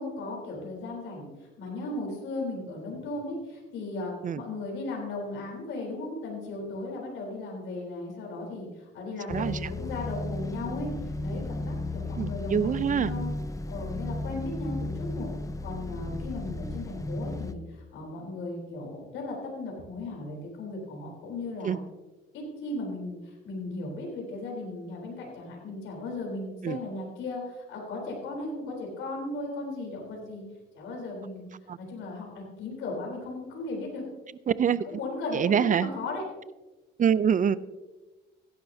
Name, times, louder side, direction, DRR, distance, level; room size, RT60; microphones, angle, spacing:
voice 1, 0.0-13.3 13.7-15.3 15.6-21.8 22.3-30.4 30.7-31.5 31.8-34.0 34.7-36.2, left 2 dB, 85° left, -1 dB, 3.8 m, -36 dB
sound 1, 9.3-17.5, left 2 dB, 15° left, 0.7 m, -34 dB
voice 2, 9.3-9.7 12.2-13.1 21.6-21.8 26.6-26.8 31.7-31.8 34.5-34.8 35.3-35.9 37.0-37.6, right 8 dB, 40° right, 17 dB, 0.5 m, -25 dB
16.0 x 11.5 x 2.8 m, 1.1 s
cardioid pair, 90°, 20 cm